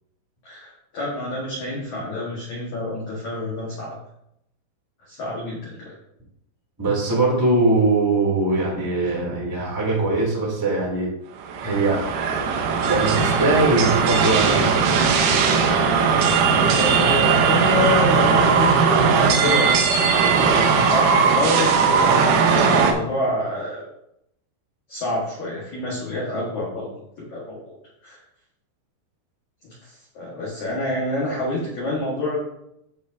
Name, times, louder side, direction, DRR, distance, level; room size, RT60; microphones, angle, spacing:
voice 1, 0.4-4.0 5.1-5.9 16.4-23.8 24.9-26.9 27.3-27.8 28.0-28.2 29.6-32.4, left 1 dB, 65° left, -6 dB, 1.9 m, -28 dB
voice 2, 6.8-11.1 11.6-12.0 12.8-14.9, right 2 dB, 10° right, -5 dB, 1.1 m, -21 dB
sound 1, 11.4-22.9, right 5 dB, 90° right, 3.8 m, -18 dB
14.5 x 4.9 x 2.8 m, 0.80 s
omnidirectional pair, 6.0 m